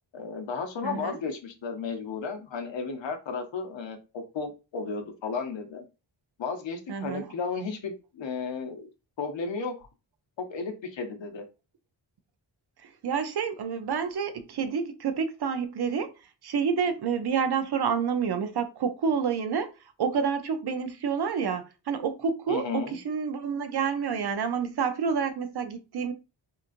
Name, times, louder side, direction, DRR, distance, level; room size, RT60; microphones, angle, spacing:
voice 1, 0.1-5.8 6.4-8.9 9.2-9.7 10.4-11.4 22.5-23.0, left 4 dB, 65° left, 0.8 m, -34 dB
voice 2, 0.8-1.2 6.9-7.3 12.8-16.1 16.4-19.7 20.0-26.1, right 6 dB, 55° right, 0.6 m, -28 dB
2.9 x 2.4 x 2.5 m
cardioid pair, 55°, 48 cm